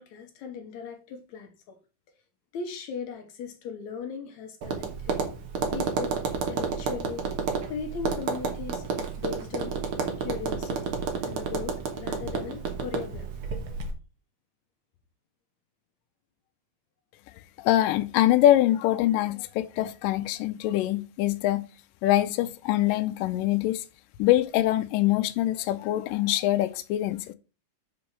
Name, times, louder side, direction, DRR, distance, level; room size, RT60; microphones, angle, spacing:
voice 1, 0.0-1.8 2.5-5.2 5.7-6.2 6.5-7.2 7.7-8.9 9.2-9.8 10.2-13.3, left 6 dB, 70° left, 2.2 m, -38 dB
Tap, 4.6-13.9, right 5 dB, 55° right, 1.6 m, -31 dB
voice 2, 17.6-21.7 22.0-23.8 24.2-27.3, left 14 dB, 90° left, 2.2 m, -24 dB
5.9 x 5.1 x 5.8 m
omnidirectional pair, 3.7 m